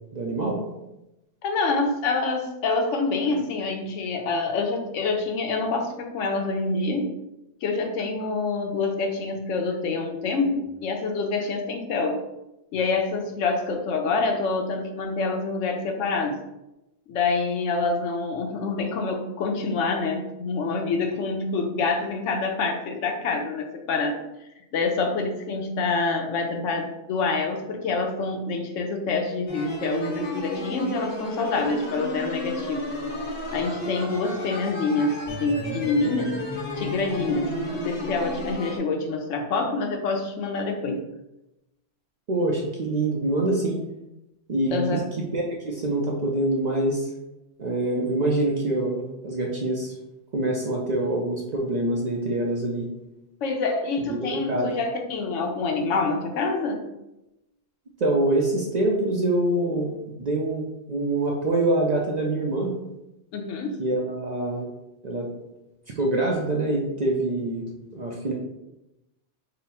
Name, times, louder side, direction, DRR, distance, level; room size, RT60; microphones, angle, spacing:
voice 1, 0.1-0.6 42.3-43.8 44.5-47.1 47.6-49.9 50.3-52.9 54.1-54.7 58.0-62.7 63.8-64.7 65.0-65.3 65.9-68.3, right 2 dB, 55° right, -1 dB, 0.5 m, -25 dB
voice 2, 1.4-7.1 7.6-12.2 12.7-16.4 17.1-24.2 24.7-32.8 33.5-36.4 36.8-41.0 44.7-45.0 53.4-56.8 63.3-63.8, left 3 dB, 90° left, 3 dB, 1.0 m, -26 dB
sound 1, 29.5-38.8, left 1 dB, 55° left, 1.5 m, -32 dB
4.0 x 2.0 x 4.1 m, 0.92 s
omnidirectional pair, 1.2 m